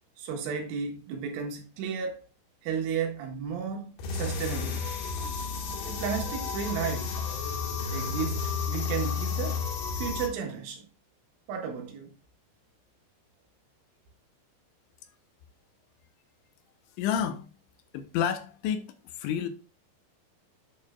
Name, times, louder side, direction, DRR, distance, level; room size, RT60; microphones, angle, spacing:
voice 1, 0.2-2.2 2.6-4.9 5.9-7.1 7.4-7.5 7.9-9.6 10.0-10.9 11.5-12.1, right 6 dB, 85° right, 3.9 m, -33 dB
sound 1, 4.0-10.3, left 5 dB, 65° left, 3.3 m, -32 dB
voice 2, 17.0-17.5 17.9-18.9 19.2-19.5, left 8 dB, 90° left, 3.2 m, -29 dB
9.4 x 6.6 x 2.4 m
omnidirectional pair, 5.5 m